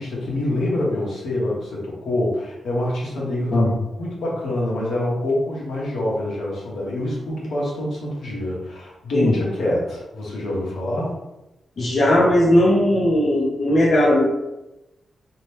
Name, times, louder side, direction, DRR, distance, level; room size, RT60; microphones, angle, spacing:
voice 1, 0.0-11.2, left 1 dB, 85° left, -5 dB, 0.9 m, -26 dB
voice 2, 11.8-14.2, left 1 dB, 40° left, -4 dB, 0.5 m, -17 dB
2.8 x 2.1 x 3.2 m, 0.96 s
wide cardioid pair, 155°, 0 cm